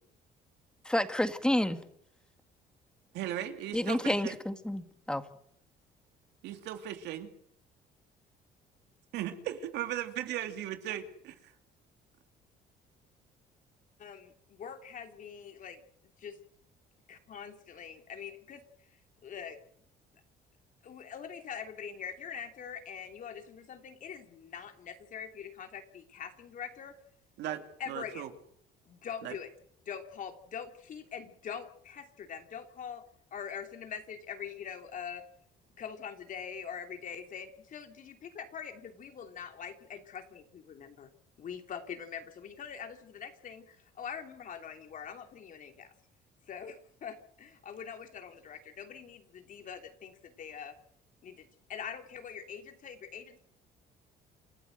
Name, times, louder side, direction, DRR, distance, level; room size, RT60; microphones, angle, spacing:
voice 1, 0.9-1.8 3.7-5.2, left 1 dB, 5° left, 1.9 m, -29 dB
voice 2, 3.1-4.4 6.4-7.3 9.1-11.5 27.4-28.3 29.2-29.3, right 12 dB, 85° right, 2.7 m, -37 dB
voice 3, 14.0-15.8 16.2-16.4 17.1-18.6 19.2-19.6 20.8-27.0 27.8-28.2 28.8-29.5 29.9-33.0 33.3-35.3 35.8-41.1 41.4-45.9 46.4-50.8 51.2-53.4, left 7 dB, 50° left, 3.0 m, -43 dB
28.0 x 14.0 x 8.0 m
cardioid pair, 110°, 17 cm